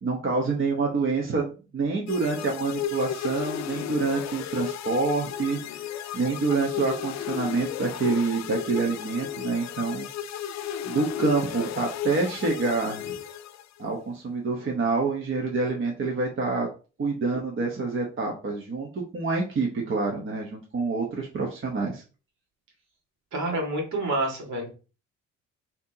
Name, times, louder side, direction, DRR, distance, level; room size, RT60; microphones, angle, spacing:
voice 1, 0.0-5.6 6.1-10.1 10.8-13.2 13.8-16.7 17.0-22.0, right 3 dB, 40° right, 0 dB, 1.1 m, -27 dB
sound 1, 2.1-13.9, left 10 dB, 65° left, 0.5 m, -34 dB
voice 2, 23.3-24.7, right 2 dB, 70° right, 1 dB, 2.0 m, -28 dB
5.8 x 2.9 x 2.8 m, 0.34 s
cardioid pair, 90°, 30 cm